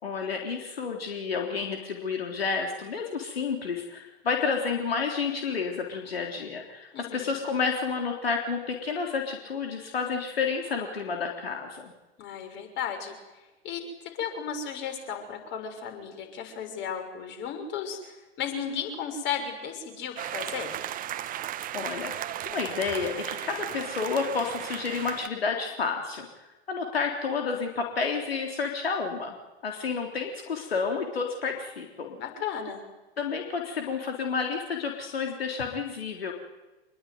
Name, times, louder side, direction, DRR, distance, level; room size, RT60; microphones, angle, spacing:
voice 1, 0.0-11.9 21.7-26.3 26.7-29.4 29.6-32.2 33.2-36.3, left 5 dB, 70° left, 2 dB, 3.7 m, -30 dB
voice 2, 6.9-7.3 12.2-13.2 13.6-13.8 14.1-20.8 32.1-32.8, left 7 dB, 35° left, 6 dB, 6.4 m, -34 dB
sound 1, 20.2-25.3, right 11 dB, 25° right, 1.3 m, -35 dB
26.5 x 21.5 x 9.6 m, 1.1 s
figure-of-eight pair, 90°, 31 cm